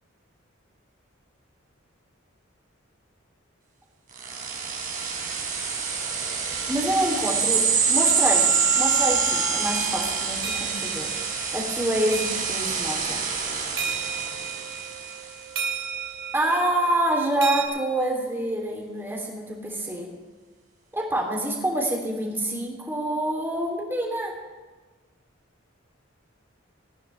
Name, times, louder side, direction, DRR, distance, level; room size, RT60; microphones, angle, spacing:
sound 1, 4.2-15.3, right 5 dB, 40° right, 3.5 m, -26 dB
voice 1, 6.7-11.1 11.5-13.2 16.3-20.1 20.9-24.3, right 1 dB, 10° right, -1 dB, 3.1 m, -27 dB
sound 2, 9.6-17.7, right 6 dB, 65° right, 3.1 m, -35 dB
20.0 x 14.5 x 3.4 m, 1.3 s
head